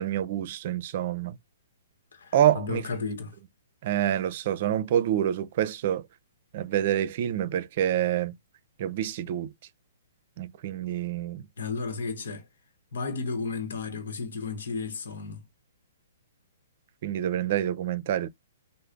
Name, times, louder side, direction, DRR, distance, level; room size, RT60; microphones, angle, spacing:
voice 1, 0.0-1.3 2.3-2.8 3.8-6.0 6.5-8.3 8.8-9.5 10.4-11.4 17.0-18.3, right 11 dB, 50° right, 0.5 m, -27 dB
voice 2, 2.1-3.3 11.6-12.5 12.9-15.4, left 4 dB, 70° left, 0.9 m, -33 dB
3.3 x 2.0 x 3.7 m
hypercardioid pair, 130°, 0 cm